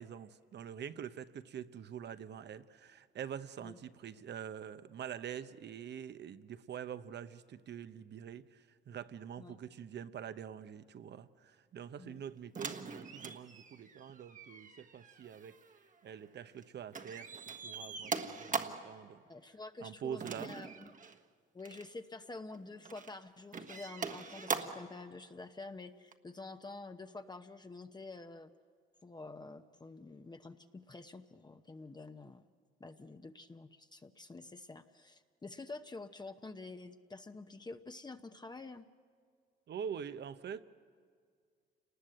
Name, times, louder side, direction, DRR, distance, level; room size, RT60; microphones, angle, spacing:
voice 1, 0.0-15.6 16.0-17.4 17.6-19.2 19.8-20.5 39.7-40.6, right 8 dB, 60° right, 12 dB, 1.0 m, -45 dB
sound 1, 12.5-16.6 16.9-18.9 20.2-21.2 21.6-21.9 22.5-23.1 23.5-24.9 26.1-26.2, right 5 dB, 40° right, 1.4 m, -42 dB
voice 2, 19.3-20.9 21.5-28.5 29.0-32.4 32.8-38.9, left 3 dB, 20° left, 7 dB, 0.9 m, -48 dB
28.5 x 19.5 x 7.9 m, 2.1 s
cardioid pair, 90°, 20 cm